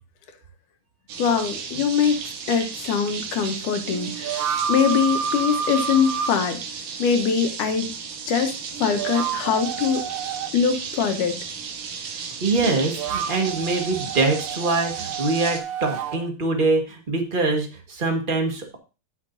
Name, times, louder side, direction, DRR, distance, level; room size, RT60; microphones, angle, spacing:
sound 1, 1.1-15.6, right 6 dB, 85° right, 2.9 m, -34 dB
voice 1, 1.2-2.2 2.5-6.6 7.0-7.9 8.3-8.5 8.8-10.0 10.5-11.4, left 7 dB, 80° left, 6 dB, 2.8 m, -22 dB
sound 2, 1.7-1.9 3.9-6.3 8.7-10.5 12.6-16.2, right 7 dB, 65° right, 1.6 m, -29 dB
voice 2, 12.1-18.8, right 3 dB, 35° right, 3 dB, 0.8 m, -24 dB
17.0 x 6.0 x 2.7 m, 0.31 s
omnidirectional pair, 3.6 m